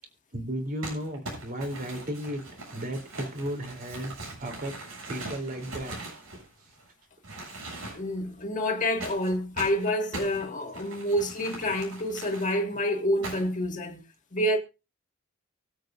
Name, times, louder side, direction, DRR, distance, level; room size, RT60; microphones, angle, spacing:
voice 1, 0.3-2.4 2.7-4.1 4.4-4.7 5.1-6.0 10.8-10.9, right 1 dB, 45° right, 3.4 m, -34 dB
Crumpling crinkling, 0.8-6.9 7.2-8.2 9.0-12.5 13.2-13.7, right 2 dB, 80° right, 7.5 m, -41 dB
voice 2, 7.9-14.0 14.3-14.6, equal, 35° left, 2.0 m, -28 dB
24.0 x 8.4 x 2.6 m
head